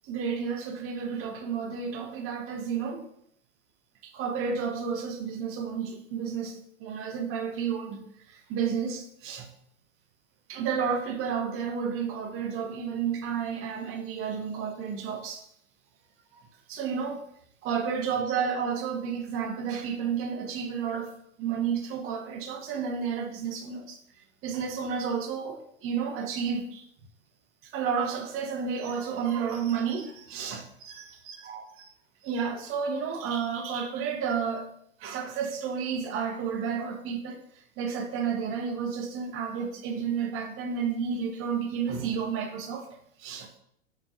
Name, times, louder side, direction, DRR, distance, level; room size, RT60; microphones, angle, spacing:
voice 1, 0.0-3.1 4.0-8.0 8.3-9.5 10.5-15.4 16.7-17.2 17.6-24.0 24.4-26.8 27.6-31.9 32.2-34.7 35.0-37.4 37.8-42.9 43.2-43.5, right 6 dB, 35° right, 0.8 m, -31 dB
4.3 x 3.1 x 2.8 m
hypercardioid pair, 105°, 37 cm